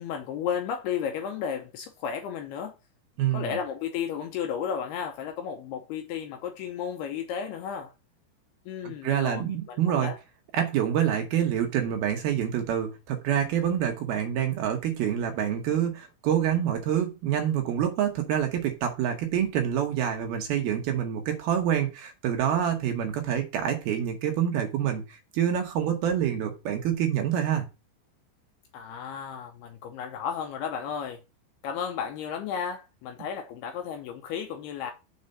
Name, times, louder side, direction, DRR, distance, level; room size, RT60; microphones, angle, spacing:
voice 1, 0.0-2.7 3.3-7.9 8.7-9.4 9.7-10.2 28.7-31.2 31.6-34.9, left 7 dB, 80° left, 2.4 m, -33 dB
voice 2, 3.2-3.6 9.0-10.1 10.5-27.6, right 9 dB, 70° right, 2.6 m, -27 dB
6.7 x 4.8 x 5.3 m
omnidirectional pair, 5.2 m